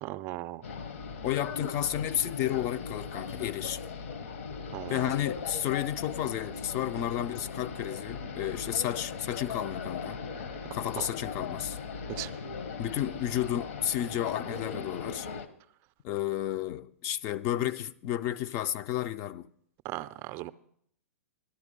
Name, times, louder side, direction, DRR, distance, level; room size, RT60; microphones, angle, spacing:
voice 1, 0.0-0.6 4.7-5.1 11.0-11.1 12.1-12.3 19.8-20.5, right 17 dB, 35° right, 0.5 m, -37 dB
sound 1, 0.6-15.5, left 5 dB, 60° left, 1.1 m, -39 dB
voice 2, 1.2-3.8 4.9-10.2 10.7-11.8 12.8-15.3 16.0-19.5, left 12 dB, 35° left, 0.5 m, -32 dB
11.5 x 11.0 x 5.2 m
figure-of-eight pair, 110°, 8 cm